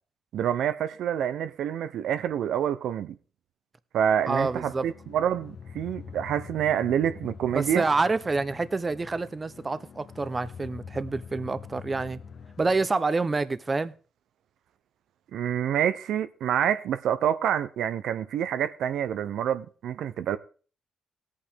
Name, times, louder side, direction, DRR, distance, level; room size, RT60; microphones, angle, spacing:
voice 1, 0.3-3.1 3.9-7.8 15.3-20.4, right 9 dB, 85° right, 0.6 m, -27 dB
sound 1, 4.3-12.9, left 6 dB, 50° left, 0.9 m, -44 dB
voice 2, 4.3-4.9 7.5-12.2 12.6-13.9, right 3 dB, 25° right, 0.6 m, -27 dB
18.5 x 8.6 x 3.5 m
cardioid pair, 135°, 0 cm